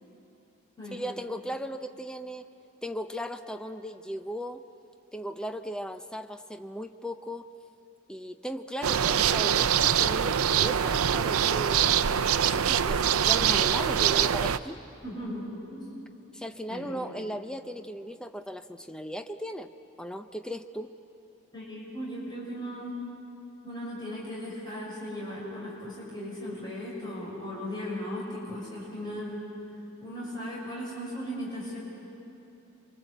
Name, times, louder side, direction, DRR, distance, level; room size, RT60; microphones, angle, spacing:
voice 1, 0.9-2.5 2.8-4.6 5.1-7.5 8.1-11.9 12.4-14.8 16.3-19.7 20.0-20.9, equal, 5° left, 8 dB, 0.7 m, -37 dB
sound 1, 8.8-14.6, right 8 dB, 90° right, 0.6 m, -24 dB
voice 2, 15.0-15.9 16.7-17.0 21.5-22.9 23.6-29.4 30.0-31.8, equal, 20° left, -5 dB, 6.2 m, -37 dB
28.0 x 25.0 x 8.0 m, 3.0 s
head